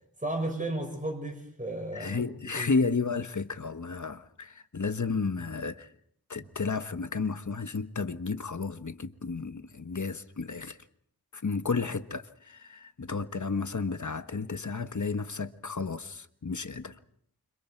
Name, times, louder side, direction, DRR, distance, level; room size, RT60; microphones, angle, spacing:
voice 1, 0.2-2.2 2.5-2.7, right 1 dB, 20° right, 6.7 m, -34 dB
voice 2, 1.9-5.9 6.3-10.8 11.3-17.0, left 4 dB, 50° left, 1.4 m, -32 dB
29.5 x 26.5 x 4.6 m
wide cardioid pair, 60°, 37 cm